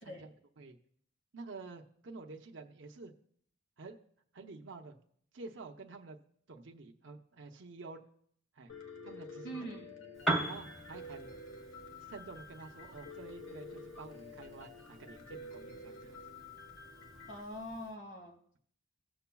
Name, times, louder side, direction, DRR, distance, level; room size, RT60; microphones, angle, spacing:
voice 1, 0.0-0.8 1.3-3.1 3.8-4.0 4.3-4.9 5.3-6.2 6.5-8.0 8.6-8.7 9.0-9.6 10.5-11.3 12.0-16.2, right 3 dB, 65° right, 3 dB, 0.7 m, -49 dB
Piano, 8.7-17.4, left 2 dB, 90° left, 1.1 m, -49 dB
voice 2, 9.4-9.9 17.3-18.4, equal, 60° left, 1 dB, 1.9 m, -43 dB
Piano 2, 10.1-17.9, right 2 dB, ahead, 1.3 m, -42 dB
18.0 x 6.9 x 2.3 m, 0.63 s
head